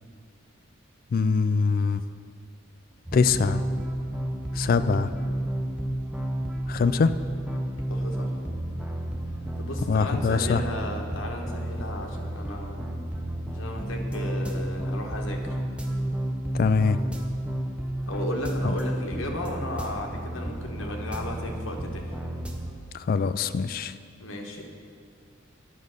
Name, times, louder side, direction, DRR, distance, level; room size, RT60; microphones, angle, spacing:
voice 1, 1.1-2.0 3.1-3.6 4.6-5.1 6.7-7.1 9.9-10.6 16.6-17.0 23.1-23.9, left 5 dB, 45° left, 12 dB, 0.3 m, -23 dB
sound 1, 3.1-22.8, right 1 dB, 5° right, 0.6 m, -31 dB
voice 2, 7.9-8.3 9.6-12.9 13.5-15.6 18.1-22.1 24.2-24.7, left 1 dB, 70° left, 1 dB, 1.2 m, -35 dB
10.0 x 5.3 x 6.5 m, 2.2 s
head